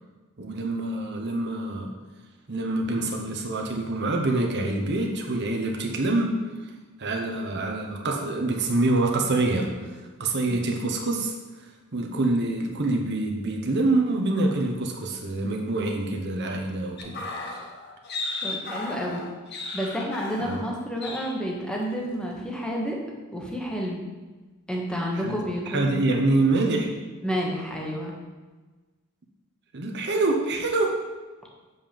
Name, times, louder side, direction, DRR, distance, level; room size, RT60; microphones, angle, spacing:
voice 1, 0.4-1.9 2.5-6.4 7.0-11.3 11.9-17.2 17.5-17.6 20.4-20.6 25.2-27.0 29.7-31.0, right 2 dB, 55° right, 1 dB, 1.0 m, -26 dB
sound 1, 17.0-20.8 21.0-21.4 21.7-21.9, left 3 dB, 55° left, 1.2 m, -35 dB
voice 2, 18.4-19.2 19.7-23.0 23.3-24.0 24.7-26.1 27.2-28.1, equal, 5° left, -2 dB, 1.3 m, -30 dB
7.5 x 5.5 x 5.2 m, 1.2 s
head